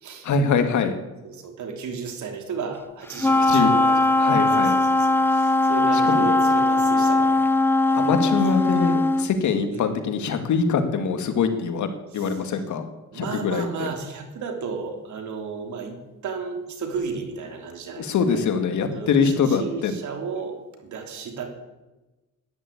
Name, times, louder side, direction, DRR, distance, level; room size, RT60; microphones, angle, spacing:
voice 1, 0.2-1.0 3.4-3.7 4.2-4.8 5.9-6.4 8.0-11.9 12.1-12.8 13.1-13.9 18.0-19.9, left 5 dB, 75° left, 7 dB, 2.1 m, -23 dB
voice 2, 1.2-7.4 7.9-8.6 9.7-9.9 13.1-16.0 16.2-18.5 18.9-20.6 20.9-21.5, right 5 dB, 70° right, 4 dB, 3.2 m, -34 dB
Wind instrument woodwind instrument, 3.2-9.3, left 2 dB, 5° left, 0.8 m, -20 dB
13.0 x 11.0 x 8.6 m, 1.1 s
cardioid pair, 90°, 30 cm